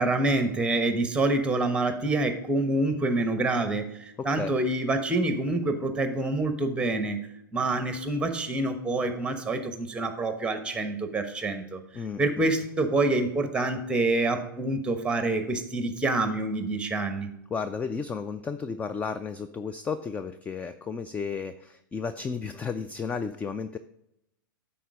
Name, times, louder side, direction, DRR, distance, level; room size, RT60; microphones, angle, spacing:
voice 1, 0.0-7.2 7.5-11.8 12.2-17.3, right 2 dB, 10° right, 8 dB, 1.1 m, -27 dB
voice 2, 4.2-4.5 11.9-12.2 17.5-23.8, left 5 dB, 10° left, 11 dB, 0.3 m, -33 dB
10.0 x 4.2 x 4.9 m, 0.82 s
hypercardioid pair, 110°, 11 cm